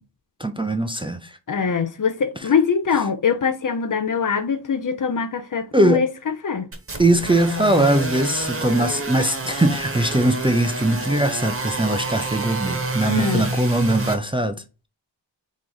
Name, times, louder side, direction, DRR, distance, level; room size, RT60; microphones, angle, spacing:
voice 1, 0.4-1.4 5.7-6.0 7.0-14.6, right 1 dB, 10° right, 0.4 m, -21 dB
voice 2, 1.5-6.7 13.0-13.5, left 6 dB, 45° left, 0.6 m, -23 dB
sound 1, 6.7-14.2, right 2 dB, 30° right, 1.1 m, -28 dB
3.9 x 3.1 x 3.7 m
wide cardioid pair, 85°, 44 cm